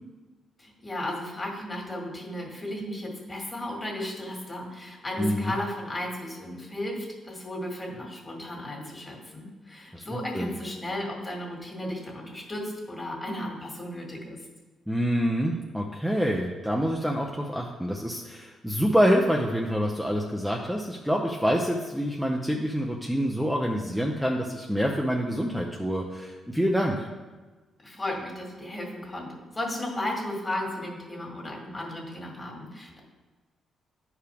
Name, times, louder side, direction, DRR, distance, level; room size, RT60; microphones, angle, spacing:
voice 1, 0.6-14.4 27.8-33.0, left 1 dB, 25° left, -1 dB, 2.1 m, -35 dB
voice 2, 5.2-5.5 9.9-10.0 10.3-10.5 14.9-27.1, equal, 5° right, 0 dB, 0.6 m, -26 dB
10.0 x 4.8 x 3.5 m, 1.3 s
cardioid pair, 80°, 0 cm